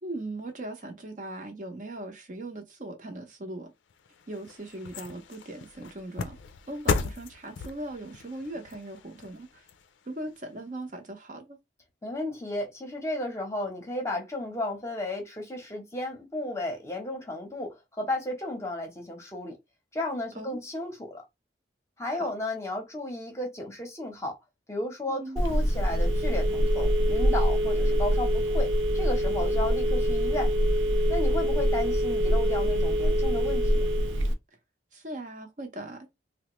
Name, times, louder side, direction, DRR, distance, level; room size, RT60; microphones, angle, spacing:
voice 1, 0.0-3.7 4.3-6.4 6.7-9.7 10.1-11.6 20.3-20.6 22.1-22.3 25.1-25.4 34.9-36.1, right 1 dB, 40° right, 0.7 m, -39 dB
sound 1, 3.9-10.4 10.8-10.9, left 4 dB, 80° left, 0.5 m, -36 dB
voice 2, 12.0-19.6 19.9-21.2 22.0-24.4 24.7-30.5 31.1-33.9, left 1 dB, 15° left, 0.8 m, -34 dB
Telephone, 25.4-34.3, equal, 90° right, 0.6 m, -24 dB
3.4 x 2.1 x 3.0 m
head